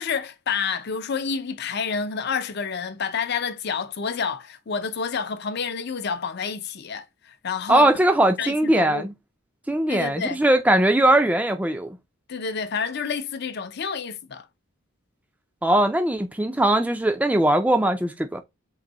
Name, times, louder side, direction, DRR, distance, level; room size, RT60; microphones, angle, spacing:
voice 1, 0.0-7.9 8.4-9.1 9.9-10.4 12.3-14.5, left 6 dB, 50° left, 0.5 m, -29 dB
voice 2, 7.7-9.1 9.7-12.0 15.6-18.4, right 1 dB, 5° right, 0.3 m, -20 dB
3.9 x 2.6 x 4.1 m
head